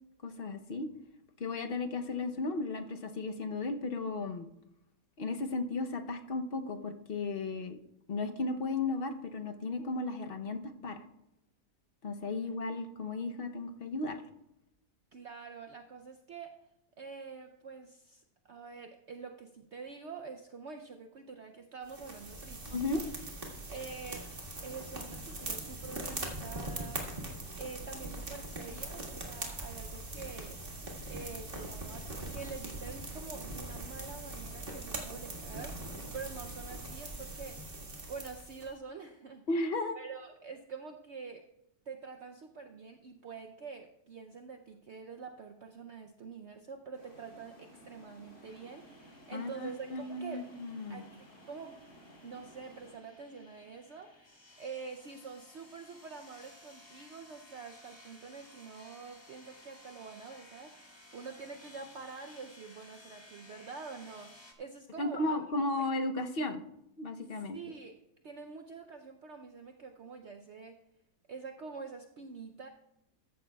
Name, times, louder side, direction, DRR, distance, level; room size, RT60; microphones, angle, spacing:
voice 1, 0.2-0.9 1.4-4.5 5.2-7.8 8.1-11.0 12.0-14.2 22.7-23.0 39.5-39.9 49.3-51.0 65.0-66.6 67.0-67.6, left 3 dB, 45° left, 6 dB, 0.8 m, -35 dB
voice 2, 15.1-16.6 17.0-23.0 23.7-24.3 24.6-30.8 31.1-37.6 38.1-39.4 39.9-41.5 41.9-50.5 50.9-51.8 52.2-65.4 67.3-67.9 68.2-70.8 71.3-72.7, right 5 dB, 60° right, 4 dB, 0.8 m, -46 dB
sound 1, 21.9-38.7, right 2 dB, 35° right, 1.9 m, -41 dB
sound 2, 46.9-52.9, equal, 65° left, 3.4 m, -56 dB
sound 3, 47.9-64.5, left 1 dB, 15° left, 1.4 m, -58 dB
14.5 x 11.5 x 2.3 m, 0.85 s
omnidirectional pair, 1.7 m